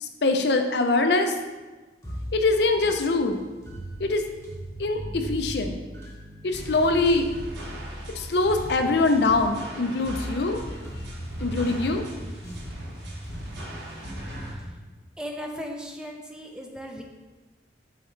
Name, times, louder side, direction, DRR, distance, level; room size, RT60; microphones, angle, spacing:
voice 1, 0.0-1.3 2.3-3.4 4.0-4.2 4.8-5.8 6.4-7.3 8.1-10.6 11.4-12.0, left 3 dB, 60° left, 5 dB, 0.5 m, -23 dB
sound 1, 2.0-14.8, right 1 dB, 15° left, 1.0 m, -39 dB
sound 2, 6.5-14.5, equal, 65° right, 1.3 m, -40 dB
voice 2, 15.2-17.0, equal, 5° right, 1 dB, 0.5 m, -36 dB
7.1 x 4.9 x 3.2 m, 1.2 s
head